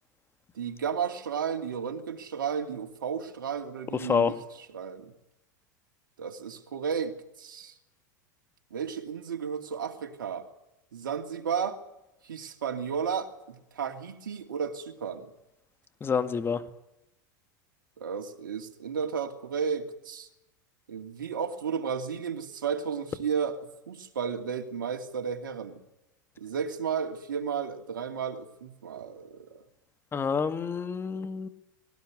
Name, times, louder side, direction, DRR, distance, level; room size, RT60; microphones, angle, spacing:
voice 1, 0.5-4.3 4.7-5.1 6.2-7.7 8.7-10.5 10.9-11.8 12.2-15.3 18.0-20.3 20.9-23.6 23.9-25.8 26.4-29.5, right 7 dB, 90° right, 4 dB, 2.8 m, -33 dB
voice 2, 3.9-4.3 16.0-16.6 30.1-31.5, left 6 dB, 20° left, 9 dB, 2.0 m, -28 dB
20.0 x 18.5 x 9.7 m, 0.88 s
hypercardioid pair, 105°, 11 cm